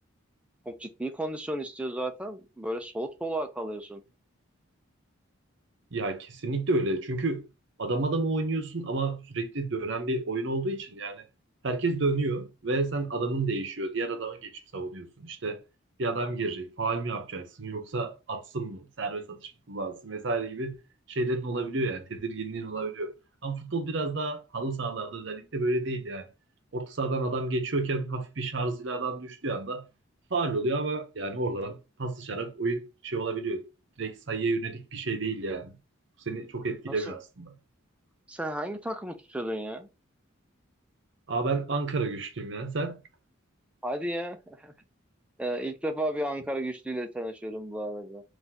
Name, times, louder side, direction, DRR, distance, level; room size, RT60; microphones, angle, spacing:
voice 1, 0.7-4.0 36.9-37.2 38.3-39.9 43.8-44.7 45.4-48.2, right 1 dB, 5° right, 0.4 m, -33 dB
voice 2, 5.9-7.5 7.8-11.2 11.6-15.6 16.0-20.8 21.1-23.1 23.4-26.3 26.7-29.8 30.3-33.7 34.0-35.8 36.3-37.5 41.3-43.0, right 3 dB, 60° right, 0.7 m, -31 dB
3.9 x 2.5 x 2.8 m
head